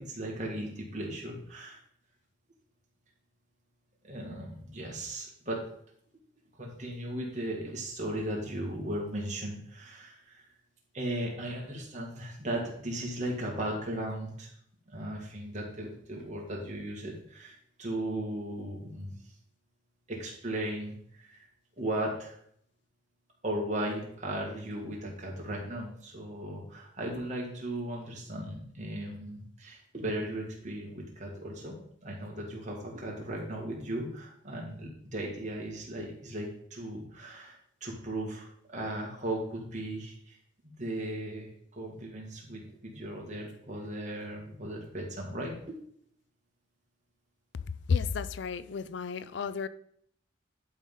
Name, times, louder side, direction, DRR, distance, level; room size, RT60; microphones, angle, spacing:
voice 1, 0.0-1.8 4.0-5.6 6.5-10.4 10.9-14.5 14.9-19.1 20.1-21.4 21.8-22.4 23.4-40.4 40.6-45.8, right 1 dB, 40° right, -1 dB, 2.2 m, -37 dB
voice 2, 47.9-49.7, left 5 dB, 70° left, 14 dB, 0.4 m, -31 dB
11.0 x 3.8 x 5.5 m, 0.66 s
head